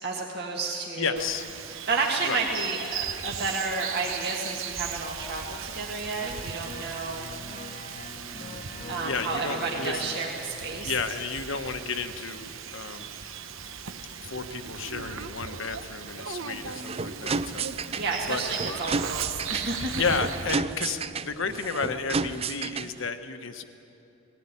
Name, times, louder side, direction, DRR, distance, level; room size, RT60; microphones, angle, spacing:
voice 1, 0.0-1.2 1.9-7.3 8.9-10.9 17.9-19.9, right 3 dB, 50° right, -2 dB, 1.9 m, -31 dB
voice 2, 1.0-1.5 2.2-2.4 9.0-10.1 10.7-13.1 14.2-18.0 18.3-18.4 19.9-23.6, left 5 dB, 60° left, 8 dB, 1.2 m, -32 dB
Bird vocalization bird call bird song, 1.2-20.5, right 7 dB, 65° right, 1.0 m, -38 dB
sound 1, 6.1-11.7 12.0-12.1, left 2 dB, 35° left, 1.1 m, -43 dB
sound 2, 16.5-23.1, right 4 dB, 25° right, 0.4 m, -32 dB
20.0 x 16.5 x 9.9 m, 2.9 s
head